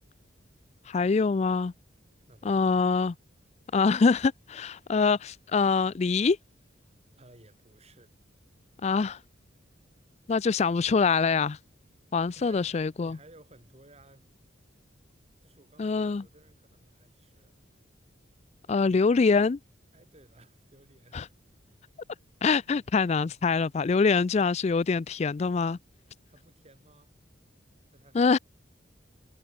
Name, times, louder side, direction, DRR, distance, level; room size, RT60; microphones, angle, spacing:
voice 1, 0.9-1.7 2.4-3.1 3.7-6.4 8.8-9.2 10.3-11.6 12.1-13.2 15.8-16.2 18.7-19.6 21.1-21.3 22.4-25.8 28.1-28.4, left 4 dB, 35° left, 0.4 m, -24 dB
voice 2, 2.2-2.9 7.2-8.1 12.3-12.7 13.0-14.2 15.4-17.5 19.9-21.3 21.7-21.8 26.3-27.2 27.9-28.3, right 2 dB, 35° right, 4.8 m, -57 dB
head